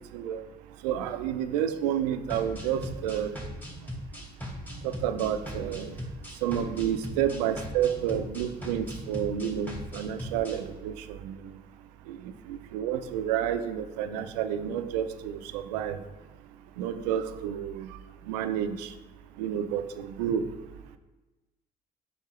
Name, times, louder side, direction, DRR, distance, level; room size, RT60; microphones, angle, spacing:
voice 1, 0.1-0.4 0.8-3.4 4.8-5.9 6.4-11.4 12.1-16.0 16.8-18.0 18.3-18.9 19.4-20.5, right 9 dB, 90° right, 10 dB, 0.5 m, -30 dB
sound 1, 2.3-10.6, equal, 10° left, 2.3 m, -39 dB
6.8 x 5.5 x 3.2 m, 1.1 s
hypercardioid pair, 50°, 20 cm